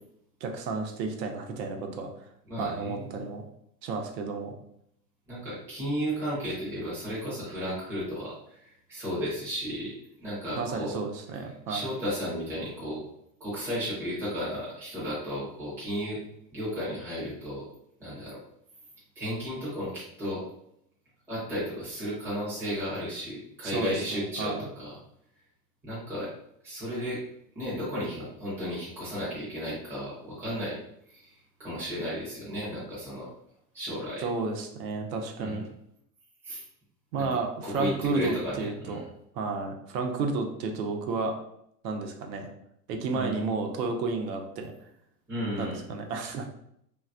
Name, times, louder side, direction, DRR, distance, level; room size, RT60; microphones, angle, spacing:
voice 1, 0.4-2.1 2.6-3.4 3.8-4.5 10.6-11.9 23.6-24.7 34.2-35.6 37.1-39.0 39.3-41.3 41.8-42.5 42.9-44.7 45.6-46.5, right 4 dB, 90° right, 4 dB, 0.8 m, -32 dB
voice 2, 2.5-3.2 5.3-9.9 10.2-10.9 11.7-13.0 13.4-16.2 16.5-17.7 18.0-18.4 19.2-20.4 21.3-25.0 25.8-26.3 26.6-27.2 27.5-30.8 31.1-33.3 33.7-34.2 35.4-35.6 36.4-36.6 37.1-37.3 37.6-39.0 43.1-43.4 45.3-45.8, equal, 5° right, -9 dB, 0.4 m, -34 dB
3.3 x 2.2 x 2.5 m, 0.73 s
supercardioid pair, 160°, 49 cm